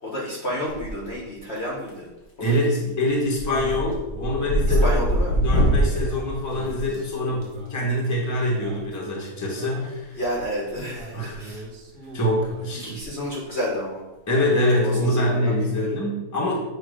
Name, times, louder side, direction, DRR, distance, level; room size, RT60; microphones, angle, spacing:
voice 1, 0.0-2.1 2.8-2.9 4.7-5.4 10.2-11.6 12.8-14.0 14.8-16.0, equal, 40° left, -4 dB, 1.3 m, -30 dB
sound 1, 0.7-1.3 1.6-2.1 2.4-2.7 3.1-7.5 8.8-9.0 10.2-11.0 11.3-11.5 12.0-12.1 12.4-12.5 12.8-13.0 13.3-13.4 15.0-15.2, right 1 dB, 85° left, 2.1 m, -24 dB
voice 2, 2.4-5.0 5.4-10.2 11.1-11.4 12.1-13.0 14.3-16.6, left 1 dB, 10° left, -3 dB, 1.2 m, -24 dB
Male speech man speaking, 3.4-5.2 5.8-7.8 8.3-10.0 10.7-12.7, right 1 dB, 60° right, 1.8 m, -40 dB
8.0 x 3.3 x 4.9 m, 1.0 s
omnidirectional pair, 1.9 m